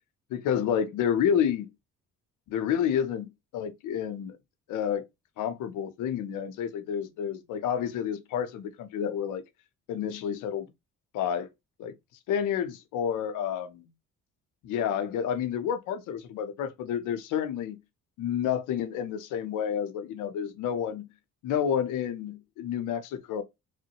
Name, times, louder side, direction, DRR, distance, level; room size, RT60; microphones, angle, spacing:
voice 1, 0.3-1.7 2.5-4.4 4.7-5.0 5.4-9.4 9.9-10.7 11.1-11.5 11.8-11.9 12.3-13.9 14.6-17.8 18.2-21.1 21.4-23.4, left 8 dB, 85° left, 0.6 m, -29 dB
3.0 x 2.1 x 2.8 m
cardioid pair, 90°, 30 cm